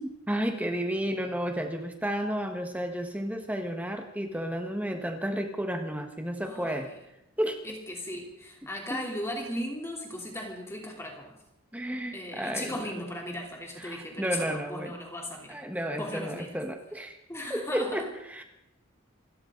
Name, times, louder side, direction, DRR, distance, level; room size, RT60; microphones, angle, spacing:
voice 1, 0.0-6.9 7.4-7.7 8.9-9.0 11.7-12.9 13.8-14.9 15.5-17.2 17.5-18.4, equal, 5° right, 4 dB, 1.4 m, -32 dB
voice 2, 6.4-6.8 7.6-11.4 12.1-15.6 15.9-16.5 17.3-18.0, left 1 dB, 10° left, 0 dB, 3.3 m, -37 dB
28.0 x 13.0 x 3.9 m, 0.85 s
head